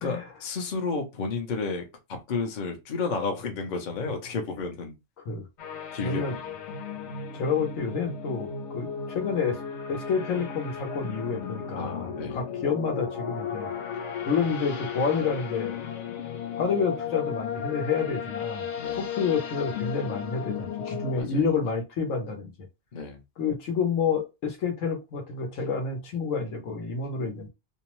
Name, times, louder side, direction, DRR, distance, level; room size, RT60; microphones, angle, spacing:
voice 1, 0.0-1.8 2.1-4.9 5.9-6.6 11.8-12.4 18.8-19.0 21.1-21.4 22.9-23.2, left 4 dB, 50° left, 0.6 m, -32 dB
sound 1, 5.6-21.2, left 7 dB, 70° left, 0.9 m, -35 dB
voice 2, 6.0-6.3 7.3-9.6 9.9-13.7 14.3-15.8 16.6-18.6 18.9-22.5 23.4-27.5, left 5 dB, 85° left, 1.2 m, -29 dB
2.7 x 2.0 x 3.0 m
omnidirectional pair, 1.3 m